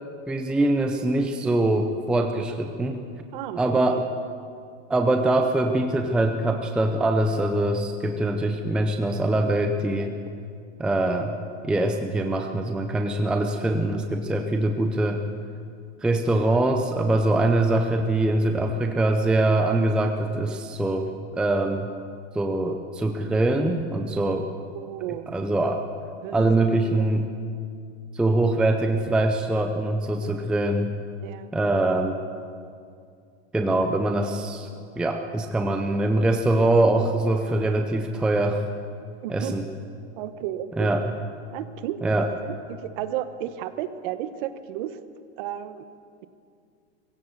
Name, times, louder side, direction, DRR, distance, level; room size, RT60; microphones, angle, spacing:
voice 1, 0.3-3.0 3.6-4.1 4.9-10.1 10.8-11.4 11.6-15.2 16.0-21.9 22.3-24.5 25.3-25.8 26.3-27.3 28.1-30.9 31.5-32.2 33.5-34.7 35.0-38.6 39.3-39.6 40.8-41.0 42.0-42.3, right 2 dB, 5° right, 5 dB, 0.5 m, -23 dB
voice 2, 24.7-25.4 26.2-26.5 27.0-27.1 31.2-31.5 39.2-39.6 40.2-40.9 41.5-42.0 42.4-45.0 45.4-45.9, right 12 dB, 45° right, 11 dB, 1.2 m, -33 dB
20.5 x 16.0 x 7.9 m, 2.3 s
supercardioid pair, 155°, 34 cm